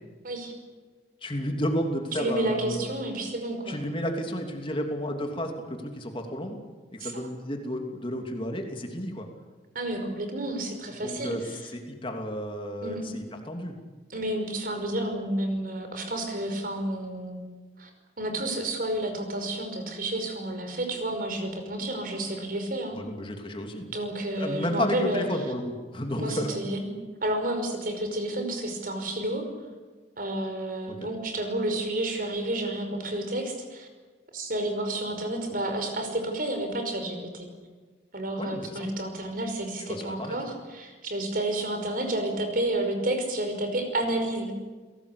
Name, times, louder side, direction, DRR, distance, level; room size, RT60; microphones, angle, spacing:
voice 1, 1.2-2.9 3.7-6.6 6.9-9.3 11.0-11.4 11.7-13.7 22.9-23.9 24.4-26.5 30.9-31.0 38.4-38.9 39.9-40.4, equal, 30° left, 3 dB, 3.0 m, -32 dB
voice 2, 2.2-3.8 7.0-7.3 9.8-11.6 12.8-13.1 14.1-17.4 17.8-17.9 18.2-23.0 23.9-25.2 26.2-26.9 27.2-29.5 30.2-33.9 34.3-37.5 38.1-44.5, right 1 dB, 55° right, 6 dB, 5.4 m, -30 dB
29.5 x 18.0 x 8.5 m, 1.4 s
head